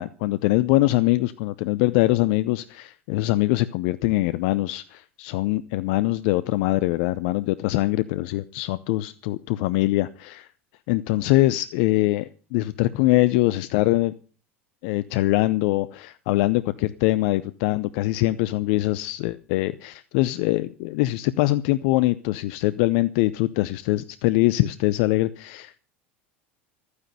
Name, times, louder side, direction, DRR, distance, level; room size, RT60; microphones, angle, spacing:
voice 1, 0.0-10.5 10.9-14.1 14.8-25.8, left 18 dB, 60° left, 15 dB, 0.7 m, -23 dB
14.0 x 9.7 x 6.8 m, 0.38 s
hypercardioid pair, 80°, 7 cm